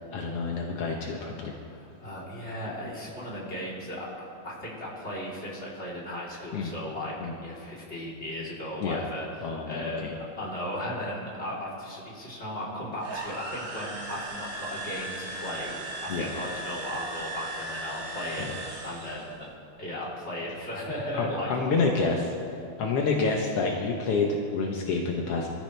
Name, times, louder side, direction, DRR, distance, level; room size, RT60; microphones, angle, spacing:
voice 1, 0.1-1.5 6.5-6.7 7.2-7.3 8.8-9.0 9.4-10.1 16.1-16.3 18.4-18.6 21.1-22.3 22.8-25.5, left 4 dB, 75° left, 0 dB, 1.4 m, -28 dB
voice 2, 1.7-4.1 4.4-18.5 18.8-19.5 19.8-21.5 21.8-22.0, left 1 dB, 20° left, -6 dB, 3.5 m, -36 dB
sound 1, 13.0-19.3, right 2 dB, 80° right, 4.7 m, -37 dB
26.0 x 13.5 x 3.4 m, 2.5 s
omnidirectional pair, 4.3 m